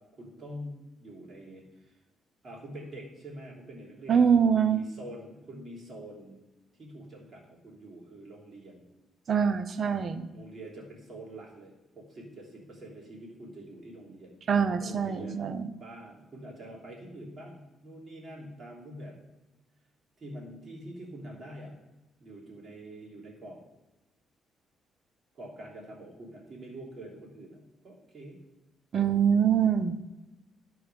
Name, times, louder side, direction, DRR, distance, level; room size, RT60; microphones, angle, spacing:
voice 1, 0.0-1.9 2.4-6.4 6.8-8.9 10.3-14.4 14.8-15.4 15.7-19.2 20.2-21.7 22.2-23.6 25.3-28.4, right 1 dB, 35° right, -3 dB, 3.2 m, -45 dB
voice 2, 4.1-4.8 9.3-10.3 14.5-15.6 28.9-30.0, right 7 dB, 50° right, 12 dB, 0.6 m, -24 dB
12.0 x 4.7 x 5.0 m, 1.1 s
cardioid pair, 90°, 0 cm